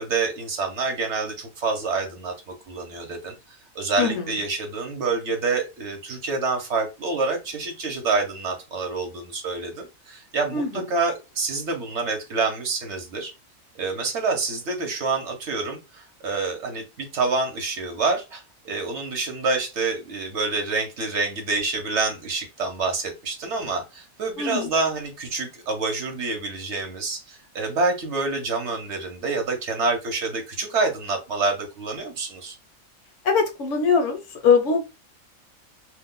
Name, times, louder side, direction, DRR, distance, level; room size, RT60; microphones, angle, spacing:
voice 1, 0.0-13.3 13.8-32.5, right 3 dB, 60° right, 3 dB, 1.0 m, -27 dB
voice 2, 24.4-24.7 33.2-34.8, left 5 dB, 70° left, 6 dB, 0.9 m, -21 dB
2.5 x 2.2 x 3.6 m, 0.27 s
omnidirectional pair, 1.4 m